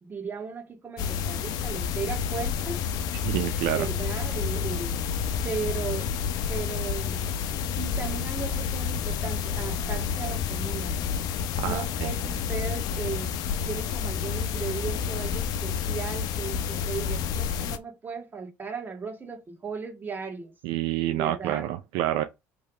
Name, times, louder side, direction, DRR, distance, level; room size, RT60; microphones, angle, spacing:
voice 1, 0.0-3.1 3.7-5.0 5.4-6.1 6.5-7.3 7.8-11.0 11.6-13.3 13.6-20.5 21.1-21.8, right 5 dB, 25° right, 1.6 m, -36 dB
sound 1, 1.0-17.8, left 7 dB, 65° left, 0.6 m, -29 dB
voice 2, 3.2-3.8 11.6-12.1 20.6-22.2, right 13 dB, 75° right, 0.5 m, -28 dB
3.3 x 3.3 x 4.9 m
supercardioid pair, 80°, 7 cm